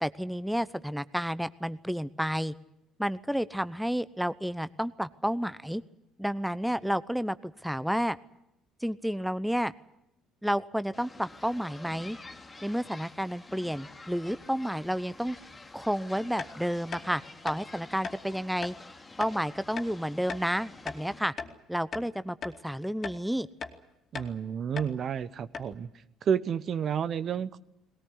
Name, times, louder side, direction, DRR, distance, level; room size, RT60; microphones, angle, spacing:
voice 1, 0.0-2.5 3.0-5.8 6.2-8.2 8.8-9.7 10.4-12.2 12.6-15.4 15.7-18.7 19.2-21.3 21.7-23.5, equal, ahead, 15 dB, 0.8 m, -31 dB
sound 1, 10.9-21.2, left 3 dB, 25° left, 2.8 m, -49 dB
sound 2, 16.4-16.5 16.9-17.1 17.4-17.6 18.0-18.2 18.6-18.8 19.2-19.3 19.8-19.9 20.3-20.5 20.9-21.6 21.9-22.1 22.4-22.6 23.0-23.2 23.6-23.8 24.1-24.3 24.8-24.9 25.2-25.3 25.5-25.7, left 5 dB, 45° left, 2.5 m, -38 dB
voice 2, 24.1-25.9 26.2-27.6, right 8 dB, 50° right, 15 dB, 1.0 m, -30 dB
20.5 x 18.5 x 9.8 m, 0.85 s
hypercardioid pair, 60°, 0 cm